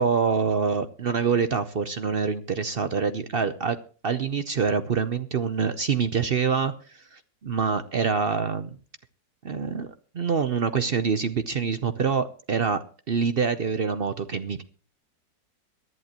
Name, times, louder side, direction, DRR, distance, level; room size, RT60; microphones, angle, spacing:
voice 1, 0.0-3.8 4.0-8.8 9.4-9.9 10.1-14.6, right 6 dB, 70° right, 11 dB, 0.5 m, -26 dB
22.5 x 11.0 x 2.9 m, 0.37 s
omnidirectional pair, 2.0 m